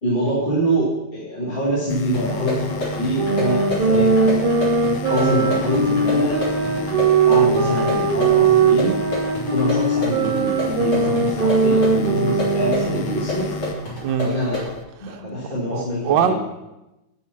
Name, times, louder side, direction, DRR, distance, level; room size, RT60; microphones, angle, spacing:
voice 1, 0.0-4.6 5.1-8.9 9.5-13.5 14.2-14.6 15.0-16.3, equal, 30° left, -8 dB, 2.2 m, -25 dB
sound 1, 1.9-14.8, left 2 dB, 80° left, 1.4 m, -32 dB
sound 2, 2.1-14.7, left 2 dB, 50° left, 4.1 m, -30 dB
sound 3, 3.1-13.1, right 4 dB, 40° right, 0.7 m, -20 dB
voice 2, 15.7-16.3, right 8 dB, 75° right, 5 dB, 1.5 m, -22 dB
12.5 x 5.7 x 5.9 m, 0.97 s
omnidirectional pair, 2.1 m